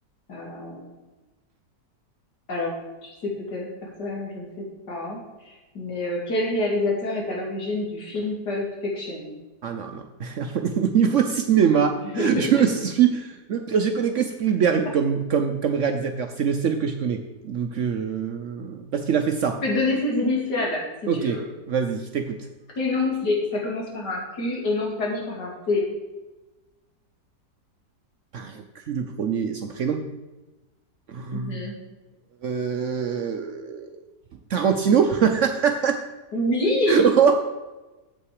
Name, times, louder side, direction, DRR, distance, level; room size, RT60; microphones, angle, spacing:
voice 1, 0.3-0.8 2.5-2.7 3.0-9.3 12.1-12.6 19.6-21.4 22.8-25.9 31.3-31.7 36.3-37.1, left 2 dB, 80° left, -2 dB, 2.8 m, -27 dB
voice 2, 9.6-19.6 21.1-21.4 21.7-22.4 28.3-30.0 31.1-31.6 32.4-34.0 34.5-36.0 36.9-37.3, right 7 dB, 65° right, 6 dB, 0.8 m, -23 dB
8.6 x 7.7 x 4.8 m, 1.1 s
omnidirectional pair, 1.8 m